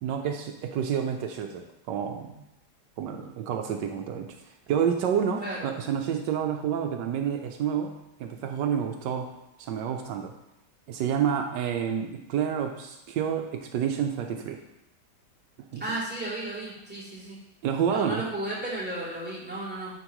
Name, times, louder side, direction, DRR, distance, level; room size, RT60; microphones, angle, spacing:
voice 1, 0.0-2.4 3.0-4.3 4.7-9.3 9.6-10.3 10.9-14.6 15.6-15.8 17.6-18.2, right 8 dB, 80° right, 4 dB, 1.3 m, -29 dB
voice 2, 15.8-17.4 17.9-19.9, right 1 dB, 5° right, -9 dB, 2.7 m, -34 dB
9.8 x 5.2 x 3.0 m, 0.87 s
omnidirectional pair, 1.9 m